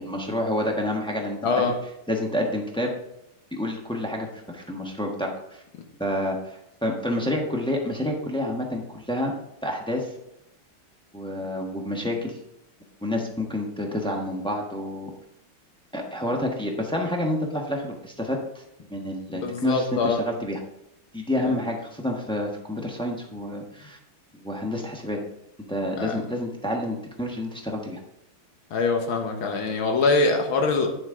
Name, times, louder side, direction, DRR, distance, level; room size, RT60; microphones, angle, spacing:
voice 1, 0.0-1.7 2.1-2.9 3.5-5.6 6.0-9.3 9.6-10.1 11.1-12.4 13.0-15.1 15.9-18.4 18.9-20.6 21.1-24.0 24.4-25.2 25.7-28.0, left 1 dB, 5° left, 0 dB, 0.7 m, -28 dB
voice 2, 1.4-1.7 19.3-20.2 21.5-21.6 26.0-26.1 28.7-30.9, left 3 dB, 70° left, 3 dB, 2.0 m, -23 dB
9.6 x 7.2 x 3.7 m, 0.81 s
omnidirectional pair, 2.4 m